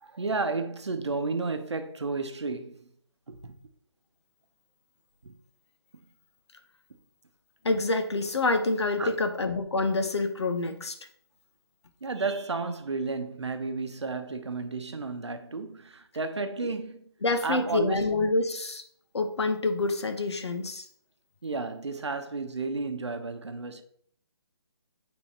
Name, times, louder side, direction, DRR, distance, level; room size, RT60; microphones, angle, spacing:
voice 1, 0.0-2.9 3.3-3.5 5.2-5.4 9.0-9.2 12.0-17.1 17.4-18.2 21.4-23.8, right 3 dB, 90° right, 0.9 m, -32 dB
voice 2, 7.6-11.0 17.2-18.8 19.1-20.9, left 2 dB, 80° left, 1.0 m, -27 dB
8.6 x 3.8 x 2.9 m
hypercardioid pair, 155°, 14 cm